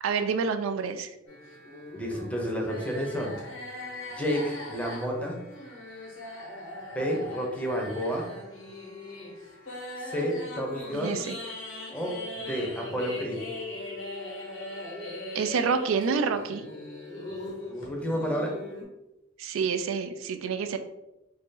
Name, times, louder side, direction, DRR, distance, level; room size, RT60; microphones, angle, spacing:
voice 1, 0.0-1.1 10.9-11.4 15.3-16.6 19.4-20.8, right 5 dB, 85° right, 9 dB, 0.3 m, -28 dB
sound 1, 1.3-18.8, left 2 dB, 85° left, 1.1 m, -40 dB
voice 2, 1.9-3.4 4.1-5.4 6.9-8.3 10.0-11.2 11.9-13.4 17.7-18.6, equal, 5° left, 0 dB, 0.6 m, -30 dB
2.9 x 2.7 x 3.6 m, 0.94 s
head